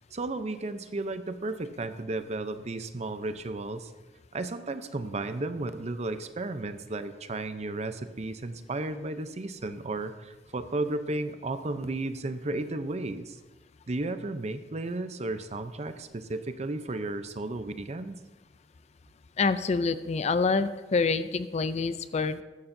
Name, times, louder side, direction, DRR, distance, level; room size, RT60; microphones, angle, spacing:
voice 1, 0.1-3.9 4.3-13.4 13.9-18.2, right 2 dB, 40° right, 10 dB, 0.6 m, -34 dB
voice 2, 19.4-22.4, left 4 dB, 40° left, 13 dB, 0.4 m, -27 dB
14.5 x 11.5 x 2.7 m, 1.2 s
head